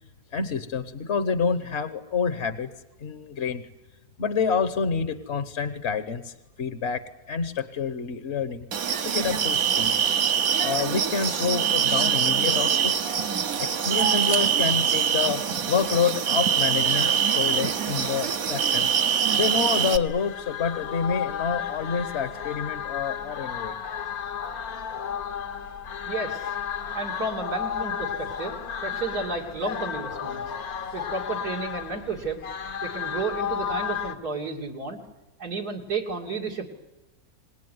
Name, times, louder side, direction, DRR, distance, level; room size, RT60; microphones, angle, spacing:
voice 1, 0.3-2.7 3.0-3.6 4.2-8.7 9.0-10.0 10.6-12.9 13.6-23.8, left 6 dB, 50° left, 10 dB, 1.3 m, -28 dB
sound 1, 8.7-20.0, right 8 dB, 70° right, 1.6 m, -24 dB
sound 2, 19.8-34.2, left 8 dB, 70° left, 1.7 m, -33 dB
voice 2, 26.1-26.6 26.9-30.4 30.9-32.4 32.8-35.0 35.4-36.7, right 3 dB, 85° right, -1 dB, 3.4 m, -32 dB
27.0 x 19.5 x 9.5 m, 1.0 s
omnidirectional pair, 1.6 m